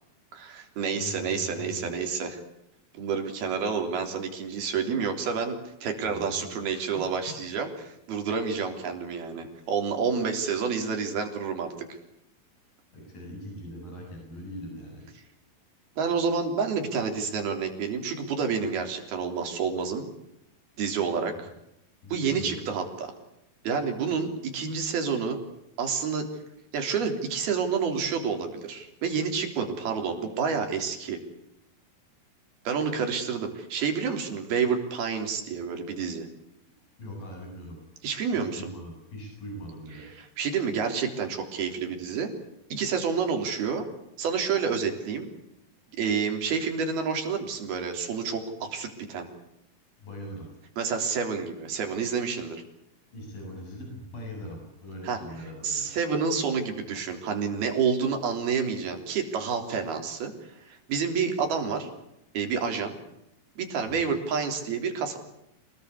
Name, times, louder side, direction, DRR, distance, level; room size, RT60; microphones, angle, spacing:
voice 1, 0.3-2.4 2.9-11.7 16.0-20.1 20.8-21.5 22.1-23.1 23.6-25.4 25.8-26.3 26.7-31.2 32.7-36.3 38.0-38.7 40.0-42.3 42.7-43.9 44.2-45.3 46.0-49.3 50.8-52.6 55.0-55.2 55.6-61.9 62.3-63.0 63.6-65.2, right 6 dB, 85° right, 5 dB, 5.5 m, -29 dB
voice 2, 0.9-2.0 6.0-6.8 7.3-7.4 12.9-15.1 22.0-22.7 37.0-37.8 38.3-40.1 50.0-50.6 53.1-55.9 63.9-64.1, equal, 65° left, 0 dB, 9.5 m, -41 dB
27.5 x 19.5 x 8.4 m, 0.82 s
omnidirectional pair, 4.3 m